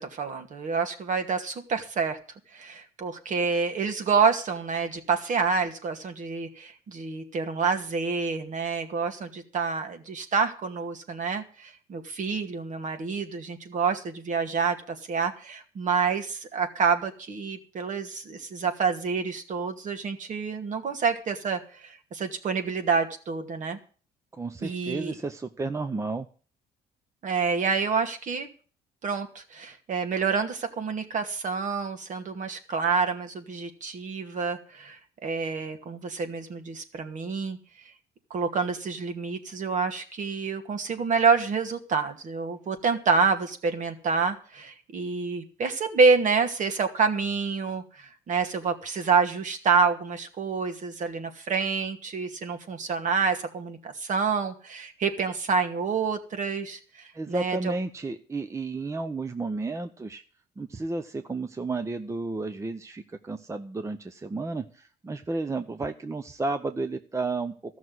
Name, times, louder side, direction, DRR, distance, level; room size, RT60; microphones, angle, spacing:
voice 1, 0.0-2.2 2.5-23.8 24.6-25.1 27.2-28.5 29.0-37.6 38.3-57.7, right 5 dB, 50° right, 6 dB, 2.2 m, -28 dB
voice 2, 24.3-26.3 57.1-60.2 60.6-67.8, right 3 dB, 15° right, 9 dB, 0.8 m, -32 dB
14.5 x 6.4 x 9.5 m, 0.40 s
cardioid pair, 110°, 17 cm